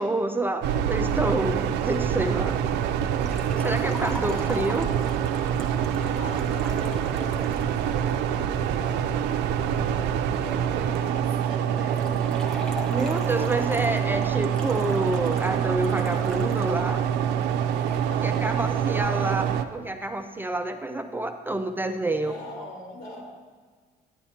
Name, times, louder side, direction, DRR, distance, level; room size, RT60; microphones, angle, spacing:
voice 1, 0.0-2.6 3.6-4.9 12.9-17.1 18.2-22.3, right 2 dB, 10° right, 7 dB, 0.4 m, -28 dB
sound 1, 0.6-19.6, right 9 dB, 85° right, 0.5 m, -26 dB
voice 2, 1.6-1.9 3.4-4.7 5.9-10.0 10.3-12.2 13.4-13.9 17.7-19.4 22.1-23.2, left 1 dB, 75° left, -4 dB, 2.7 m, -42 dB
Liquid, 3.2-8.2 11.9-16.7 17.0-17.1 18.0-18.1, equal, 5° left, 0.8 m, -41 dB
11.0 x 9.9 x 2.8 m, 1.5 s
cardioid pair, 110°, 17 cm